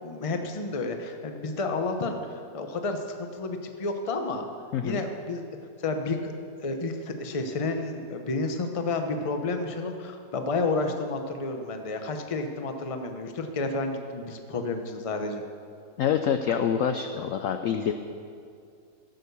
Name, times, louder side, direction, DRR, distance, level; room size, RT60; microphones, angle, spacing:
voice 1, 0.0-4.5 4.8-5.4 5.8-6.3 6.6-15.4, left 3 dB, 30° left, 5 dB, 0.6 m, -31 dB
voice 2, 4.7-5.0 16.0-17.9, left 8 dB, 75° left, 7 dB, 0.7 m, -26 dB
16.0 x 6.5 x 6.9 m, 2.4 s
omnidirectional pair, 1.9 m